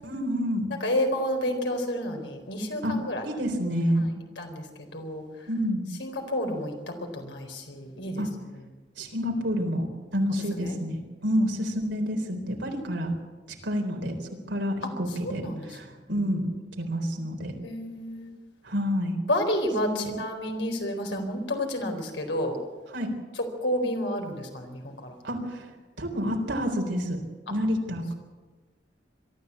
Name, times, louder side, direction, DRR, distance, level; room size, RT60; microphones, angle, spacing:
voice 1, 0.0-0.7 2.8-2.9 3.2-4.0 5.5-5.9 8.2-8.3 9.0-13.1 13.6-14.1 14.5-16.5 16.8-17.5 18.6-19.2 19.9-20.2 22.9-23.1 25.2-25.7 26.0-27.2 27.5-28.1, equal, 85° right, 3 dB, 4.0 m, -28 dB
voice 2, 0.8-3.2 4.0-4.1 4.4-4.6 4.9-5.2 6.0-6.7 7.1-8.2 10.5-10.8 15.2-15.7 17.6-18.3 19.3-22.6 23.6-25.1 27.5-27.6, left 1 dB, 90° left, 4 dB, 4.2 m, -30 dB
22.5 x 13.5 x 8.5 m, 1.3 s
head